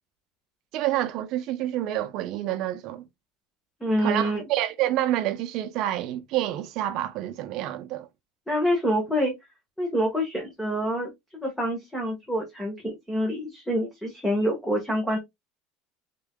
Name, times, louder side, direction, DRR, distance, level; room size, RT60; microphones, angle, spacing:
voice 1, 0.7-3.0 4.0-8.1, right 13 dB, 50° right, 0.8 m, -28 dB
voice 2, 3.8-4.4 8.5-9.4 9.8-11.1 11.4-15.2, equal, 5° left, 1.6 m, -26 dB
5.4 x 3.8 x 2.3 m
cardioid pair, 150°, 0 cm